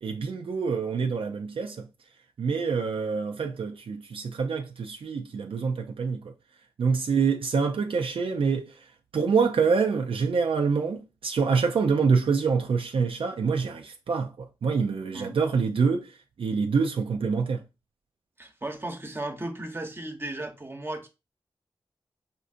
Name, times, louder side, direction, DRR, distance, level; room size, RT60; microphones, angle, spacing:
voice 1, 0.0-1.9 2.4-6.2 6.8-8.7 9.1-16.1 16.4-17.6, right 5 dB, 70° right, 0.4 m, -26 dB
voice 2, 18.4-21.1, right 1 dB, 25° right, 0.8 m, -35 dB
5.1 x 2.5 x 2.5 m
wide cardioid pair, 60°, 10 cm